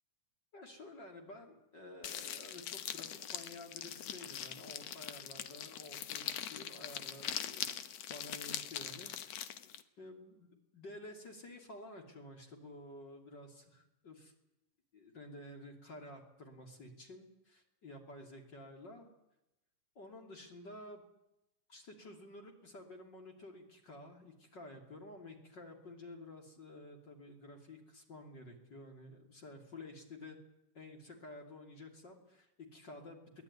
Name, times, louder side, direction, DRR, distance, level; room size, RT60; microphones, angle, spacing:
voice 1, 0.5-7.7 8.1-9.5 10.0-14.3 14.9-19.1 19.9-21.0 21.7-30.4 30.7-33.4, left 1 dB, 35° left, 2 dB, 3.2 m, -51 dB
sound 1, 2.0-9.8, left 10 dB, 65° left, 1.7 m, -42 dB
22.5 x 17.5 x 9.6 m, 0.90 s
omnidirectional pair, 3.9 m